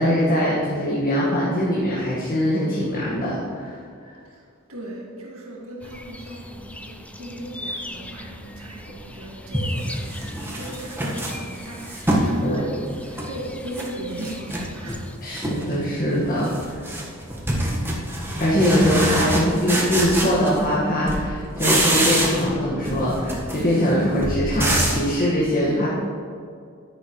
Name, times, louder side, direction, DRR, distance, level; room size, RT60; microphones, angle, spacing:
voice 1, 0.0-4.1 12.4-12.6 15.2-16.9 18.4-25.9, equal, 40° left, -7 dB, 1.7 m, -22 dB
voice 2, 4.7-15.0, right 1 dB, 90° right, -3 dB, 2.1 m, -36 dB
sound 1, 5.8-15.2, left 1 dB, 5° left, 0.5 m, -40 dB
sound 2, 8.9-9.0 9.5-12.3 12.8-13.9 14.2-15.0 15.3-15.8 16.1-20.8 21.1-22.6 22.8-25.1, right 1 dB, 10° right, 1.4 m, -25 dB
10.5 x 10.0 x 3.1 m, 2.3 s
head